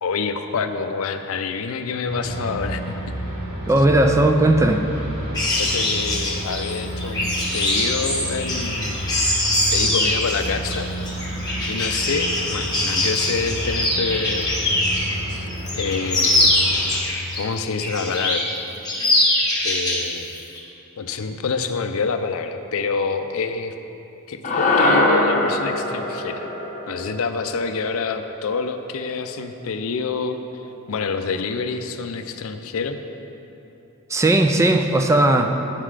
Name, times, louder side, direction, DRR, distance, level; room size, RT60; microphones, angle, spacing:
voice 1, 0.0-3.2 5.6-9.1 9.7-10.9 11.2-11.4 11.7-14.6 15.3-15.5 15.7-16.6 17.4-18.5 19.6-20.3 21.0-23.7 24.3-26.5 26.9-33.0, left 4 dB, 65° left, 8 dB, 0.5 m, -27 dB
sound 1, 2.1-16.9, right 1 dB, 40° right, 1.7 m, -31 dB
voice 2, 3.7-4.9 34.1-35.5, right 1 dB, 15° right, 5 dB, 0.3 m, -17 dB
sound 2, 5.3-15.2 15.5-17.4 17.8-18.5 18.8-20.1 20.4-20.6, left 1 dB, 20° left, 1.2 m, -23 dB
sound 3, 24.4-28.9, left 2 dB, 35° left, 0.9 m, -23 dB
8.9 x 5.8 x 4.8 m, 3.0 s
head